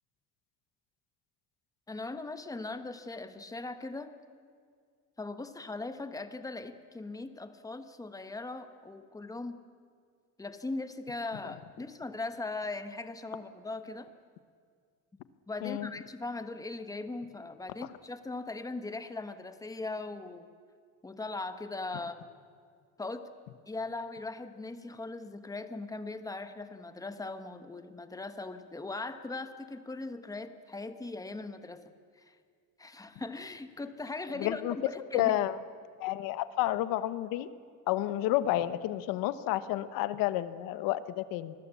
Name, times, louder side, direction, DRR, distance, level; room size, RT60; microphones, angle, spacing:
voice 1, 1.9-4.1 5.2-9.6 10.4-14.1 15.5-20.5 21.0-22.2 23.0-23.3 23.7-31.9 32.2-32.4 32.8-35.4, left 3 dB, 10° left, 9 dB, 1.2 m, -39 dB
voice 2, 34.4-34.8 35.1-35.6 36.0-37.5 37.9-41.5, left 14 dB, 85° left, 13 dB, 1.2 m, -30 dB
25.5 x 20.0 x 8.4 m, 2.1 s
cardioid pair, 150°, 33 cm